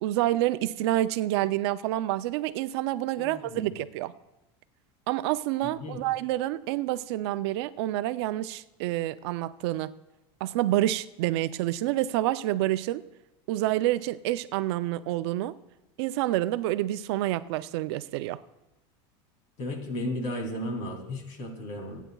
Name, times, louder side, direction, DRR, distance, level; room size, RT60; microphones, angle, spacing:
voice 1, 0.0-4.1 5.1-9.9 10.4-13.0 13.5-15.5 16.0-18.4, right 15 dB, 75° right, 13 dB, 0.5 m, -28 dB
voice 2, 3.2-3.7 5.6-6.0 19.6-22.0, left 1 dB, 65° left, 3 dB, 2.9 m, -34 dB
22.5 x 9.1 x 2.3 m, 0.95 s
supercardioid pair, 140°, 14 cm